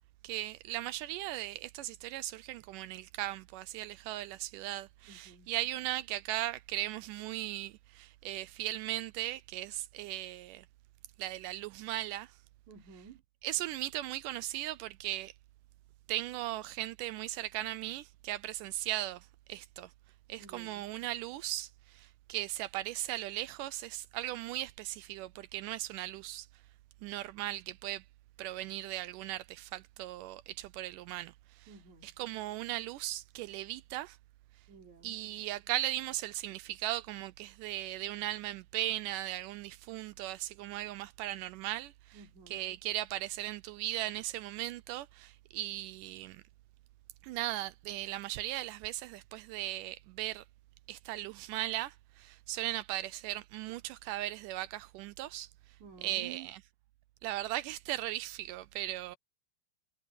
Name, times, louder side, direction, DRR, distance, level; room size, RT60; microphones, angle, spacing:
voice 1, 0.2-10.7 11.2-12.4 13.4-15.3 16.1-19.9 20.3-26.5 27.0-28.0 28.4-31.7 32.0-34.2 35.0-46.4 47.2-50.4 50.9-55.5 56.0-56.6 57.2-59.2, right 15 dB, 80° right, 1.9 m, -38 dB
voice 2, 5.1-5.5 12.7-13.2 20.4-20.9 31.7-32.1 34.7-35.2 42.1-42.6 55.8-56.5, right 7 dB, 55° right, 4.8 m, -52 dB
omnidirectional pair, 4.0 m